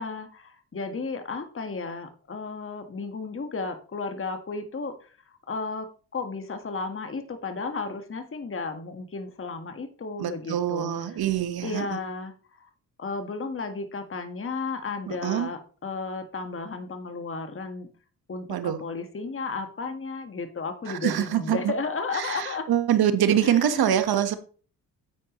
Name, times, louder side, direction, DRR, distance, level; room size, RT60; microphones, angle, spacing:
voice 1, 0.0-11.2 11.6-12.7 13.0-17.9 18.3-22.7 23.4-23.9, left 4 dB, 35° left, 7 dB, 1.6 m, -34 dB
voice 2, 10.2-12.0 15.1-15.5 18.5-18.8 20.9-21.7 22.1-24.4, right 10 dB, 70° right, 10 dB, 1.4 m, -25 dB
10.0 x 8.6 x 3.1 m, 0.40 s
supercardioid pair, 60°, 39 cm